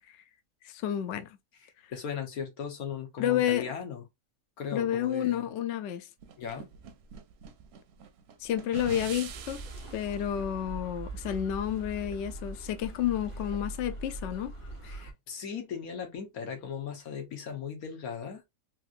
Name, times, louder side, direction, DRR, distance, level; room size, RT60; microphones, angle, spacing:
voice 1, 0.6-1.4 3.2-3.7 4.7-6.1 8.4-9.6 9.9-14.5, left 10 dB, 65° left, 0.8 m, -30 dB
voice 2, 1.9-4.0 4.6-5.5 6.4-6.7 14.8-18.4, left 7 dB, 85° left, 1.6 m, -37 dB
sound 1, 6.2-10.1, right 6 dB, 60° right, 0.7 m, -44 dB
sound 2, 9.2-15.1, right 2 dB, 25° left, 1.0 m, -41 dB
3.6 x 3.0 x 2.4 m
omnidirectional pair, 1.5 m